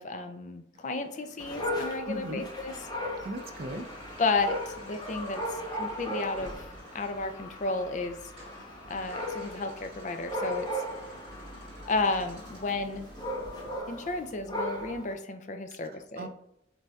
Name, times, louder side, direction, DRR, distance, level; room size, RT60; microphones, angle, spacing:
voice 1, 0.0-3.1 4.2-6.7 6.9-8.3 8.9-10.8 11.9-13.1 13.9-16.3, left 3 dB, 40° left, 7 dB, 0.5 m, -33 dB
sound 1, 0.7-13.8, equal, 30° right, 1.6 m, -51 dB
Dog, 1.4-15.1, equal, 20° left, 1.0 m, -37 dB
voice 2, 2.1-2.4 3.2-3.8 15.8-16.3, right 1 dB, 50° right, 5 dB, 0.6 m, -37 dB
7.4 x 2.7 x 2.4 m, 0.77 s
head